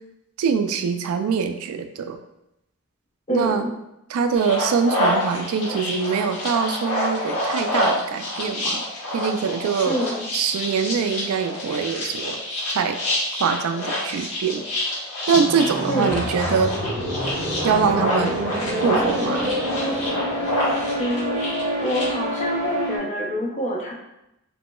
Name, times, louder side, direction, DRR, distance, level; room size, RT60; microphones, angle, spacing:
voice 1, 0.4-2.2 3.3-3.7 4.1-8.8 9.1-10.0 10.3-12.4 12.7-13.0 13.4-14.6 15.3-16.7 17.6-18.4 18.8-19.5, right 6 dB, 70° right, 8 dB, 0.3 m, -23 dB
voice 2, 3.3-3.7 9.9-10.3 15.9-16.3 21.0-21.4 21.8-23.9, equal, 30° left, -1 dB, 0.5 m, -26 dB
sound 1, 4.4-22.0, left 1 dB, 75° left, 1.0 m, -27 dB
sound 2, 15.3-23.0, equal, 40° right, 0.7 m, -27 dB
3.0 x 2.9 x 2.2 m, 0.86 s
head